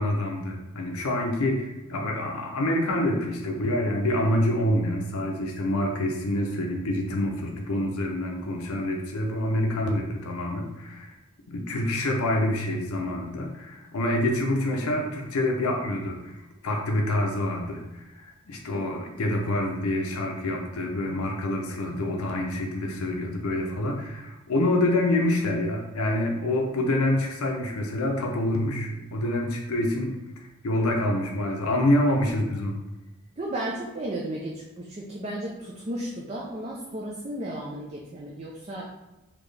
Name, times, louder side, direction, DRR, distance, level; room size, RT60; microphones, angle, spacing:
voice 1, 0.0-11.2 11.5-16.3 16.6-32.8, left 1 dB, 90° left, 1 dB, 0.6 m, -27 dB
voice 2, 33.4-38.8, right 1 dB, 30° right, -3 dB, 0.4 m, -34 dB
4.2 x 2.8 x 3.2 m, 1.0 s
head